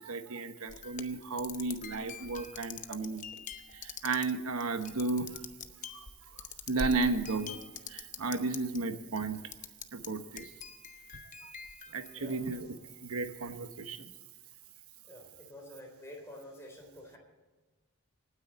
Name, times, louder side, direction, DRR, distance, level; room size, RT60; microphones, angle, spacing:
voice 1, 0.0-3.4 3.7-5.4 5.9-6.1 6.4-7.6 7.9-9.4 9.9-10.5 11.4-11.5 11.9-12.7 13.0-14.1, right 3 dB, 80° right, 9 dB, 1.2 m, -34 dB
sound 1, 0.7-8.8 9.1-10.1 10.4-12.8, left 6 dB, 35° left, 0.7 m, -44 dB
voice 2, 2.9-3.3 12.1-12.4 15.1-17.2, left 1 dB, 10° left, 0 dB, 3.6 m, -49 dB
26.0 x 9.7 x 4.2 m, 1.3 s
head